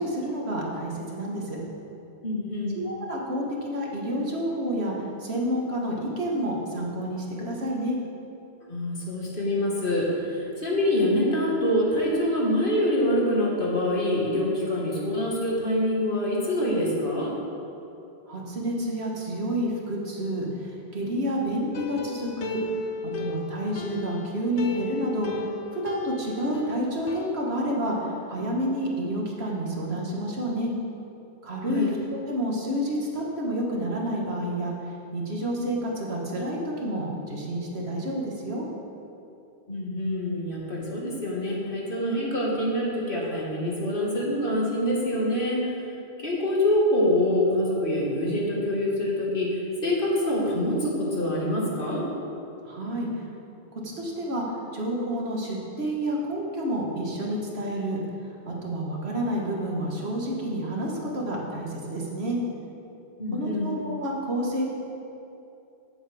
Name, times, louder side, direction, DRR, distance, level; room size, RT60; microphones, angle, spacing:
voice 1, 0.0-1.6 2.7-4.9 5.2-8.0 18.3-22.6 23.0-25.4 25.7-30.7 31.4-34.7 35.1-38.7 52.7-53.1 53.8-54.4 54.7-58.0 58.5-62.4 63.3-64.6, equal, 70° right, -3 dB, 1.8 m, -29 dB
voice 2, 2.2-2.8 8.6-17.3 31.7-31.9 39.7-45.7 46.2-52.1 63.2-63.8, left 1 dB, 50° left, -4 dB, 2.0 m, -25 dB
sound 1, 21.7-24.3 24.6-26.7 27.1-27.4, left 2 dB, 85° left, 0.9 m, -35 dB
16.0 x 7.2 x 3.5 m, 2.8 s
omnidirectional pair, 1.1 m